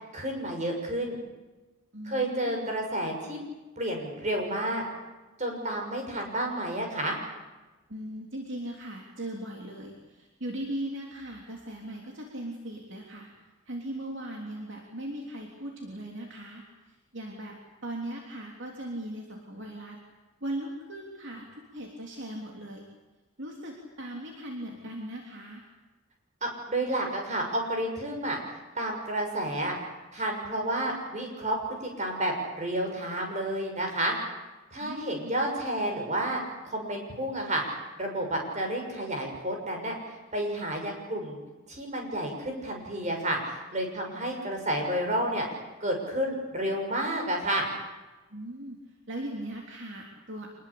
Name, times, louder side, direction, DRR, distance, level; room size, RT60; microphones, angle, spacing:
voice 1, 0.1-1.2 2.0-3.4 3.8-4.8 5.4-7.2 26.4-28.4 28.7-29.8 30.1-34.1 34.7-37.6 38.0-39.9 40.3-41.4 41.7-45.4 45.8-47.7, right 1 dB, 35° right, 2 dB, 6.4 m, -30 dB
voice 2, 1.9-2.7 7.9-13.3 13.7-17.5 17.8-20.0 20.4-22.8 23.4-25.6 34.8-35.3 44.1-44.4 48.3-48.8 49.1-50.5, right 1 dB, 55° right, 1 dB, 3.3 m, -39 dB
26.5 x 21.0 x 8.6 m, 1.2 s
head